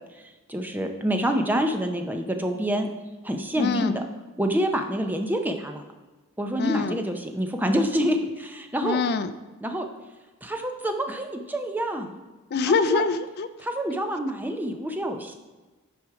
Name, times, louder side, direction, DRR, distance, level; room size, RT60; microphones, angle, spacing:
voice 1, 0.5-2.9 3.2-4.0 4.4-5.8 6.4-9.0 9.6-9.9 10.4-12.1 12.9-13.0 13.6-15.3, equal, 10° right, 4 dB, 0.6 m, -27 dB
voice 2, 3.6-4.0 6.6-7.0 8.8-9.3 12.5-13.5, left 4 dB, 45° left, 12 dB, 0.4 m, -25 dB
9.6 x 5.0 x 4.7 m, 1.2 s
head